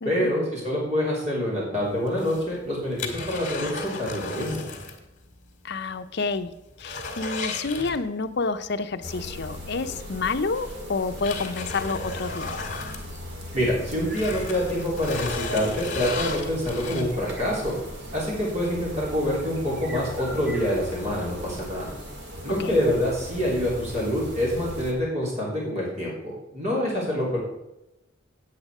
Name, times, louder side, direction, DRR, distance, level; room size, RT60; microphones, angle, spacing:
voice 1, 0.1-4.6 13.5-17.8 18.1-21.9 22.4-27.4, equal, 35° right, -4 dB, 3.5 m, -26 dB
sound 1, 2.1-5.1 5.3-5.4 5.9-6.0 6.4-8.4 9.8-9.9 10.6-13.7 14.0-17.3 17.9-18.0, left 3 dB, 40° left, 2.1 m, -34 dB
voice 2, 5.6-12.6 22.6-22.8, left 4 dB, 60° left, 8 dB, 0.7 m, -29 dB
sound 2, 9.0-24.9, equal, 60° right, 2.3 m, -38 dB
8.8 x 8.7 x 4.9 m, 0.93 s
head